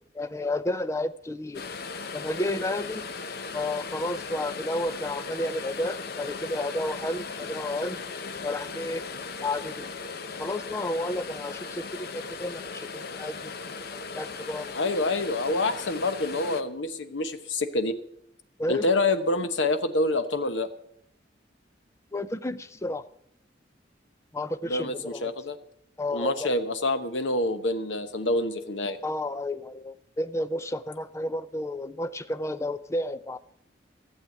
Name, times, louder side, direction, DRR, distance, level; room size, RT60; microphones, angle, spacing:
voice 1, 0.1-1.6 2.1-3.1 3.5-8.0 8.4-9.0 9.4-9.9 10.4-14.7 18.6-18.8 22.1-23.0 24.3-25.3 26.0-26.5 29.0-33.4, left 1 dB, 15° left, 13 dB, 0.5 m, -31 dB
sound 1, 1.5-16.6, left 4 dB, 55° left, 0.8 m, -38 dB
voice 2, 14.7-18.0 18.7-20.7 24.6-25.6 26.1-29.0, left 2 dB, 90° left, 10 dB, 1.1 m, -27 dB
15.0 x 7.8 x 7.7 m, 0.73 s
head